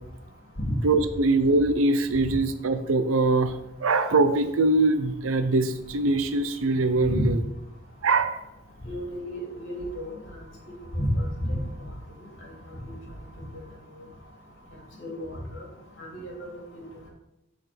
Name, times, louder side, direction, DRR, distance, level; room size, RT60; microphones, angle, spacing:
voice 1, 0.8-3.5 3.8-7.4 8.0-8.4, right 2 dB, 85° right, 10 dB, 0.6 m, -22 dB
voice 2, 8.9-10.1 11.0-11.6 15.0-15.3 15.5-15.6 16.1-16.8, equal, 65° left, -3 dB, 2.5 m, -31 dB
6.7 x 4.3 x 6.0 m, 0.89 s
head